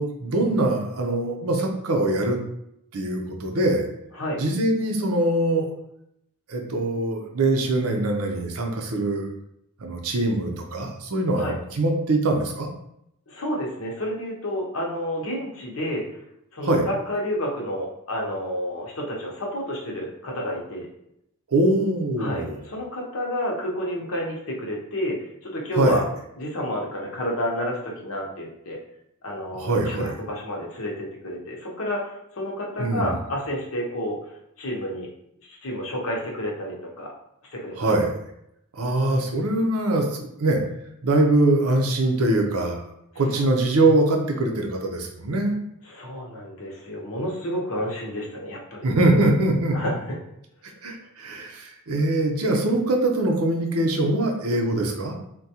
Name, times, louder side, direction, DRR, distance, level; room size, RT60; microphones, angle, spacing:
voice 1, 0.0-2.4 2.9-3.9 4.4-5.7 6.5-9.3 9.8-12.7 16.6-16.8 21.5-22.6 25.8-26.0 29.5-30.1 32.8-33.2 37.8-38.1 38.7-40.1 40.4-40.6 41.0-42.9 43.2-45.6 48.8-49.8 50.8-55.1, right 2 dB, 85° right, 2 dB, 0.6 m, -23 dB
voice 2, 13.3-16.0 16.5-20.9 22.2-26.0 26.4-28.8 29.2-35.1 35.5-37.1 37.5-37.9 43.4-43.5 45.8-48.9 49.7-50.2, equal, 65° left, -1 dB, 0.7 m, -30 dB
3.6 x 2.2 x 2.8 m, 0.78 s
head